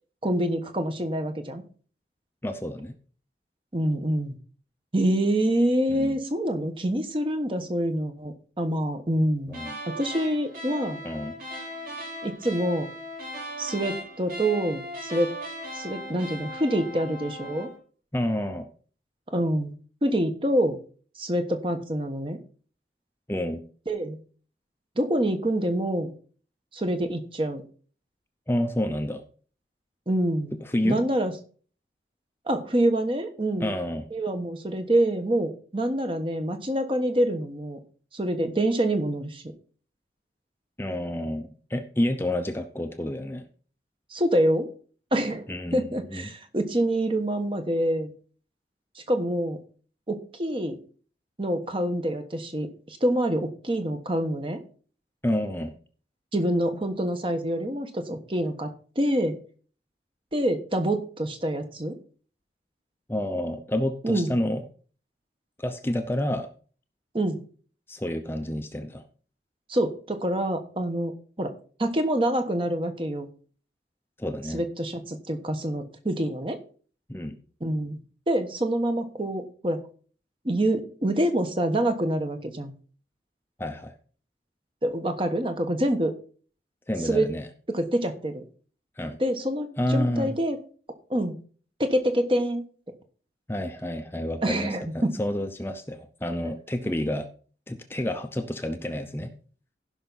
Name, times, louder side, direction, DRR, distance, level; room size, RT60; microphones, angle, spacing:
voice 1, 0.2-1.6 3.7-4.3 4.9-9.6 9.9-11.0 12.2-12.9 13.6-15.3 15.7-17.7 19.3-19.7 20.0-20.8 21.2-22.4 23.9-24.2 25.0-26.1 26.7-27.6 30.1-30.6 30.8-31.3 32.5-33.8 34.1-37.8 38.1-39.4 44.1-44.7 45.1-48.1 49.0-49.6 50.1-50.8 51.4-54.6 56.3-59.4 60.3-62.0 64.0-64.3 67.1-67.4 69.7-71.1 71.4-71.5 71.8-73.3 74.5-76.6 77.6-78.0 78.3-79.8 80.4-82.7 84.8-86.1 87.0-87.3 87.7-88.4 89.2-90.6 91.1-91.4 91.8-92.6 94.4-95.2, right 1 dB, 30° right, 6 dB, 1.1 m, -26 dB
voice 2, 2.4-2.9 5.9-6.1 9.5-9.7 11.0-11.3 18.1-18.7 23.3-23.6 28.5-29.2 30.6-31.0 33.6-34.1 40.8-43.4 45.5-45.8 46.1-46.2 55.2-55.7 63.1-64.6 65.6-66.5 67.9-69.0 74.2-74.6 77.1-77.4 83.6-83.9 86.9-87.5 89.0-89.2 89.8-90.4 93.5-97.3 97.7-99.3, left 1 dB, 15° left, 6 dB, 0.7 m, -29 dB
sound 1, 9.5-17.8, equal, 50° right, 3.4 m, -38 dB
15.0 x 5.8 x 4.0 m, 0.42 s
head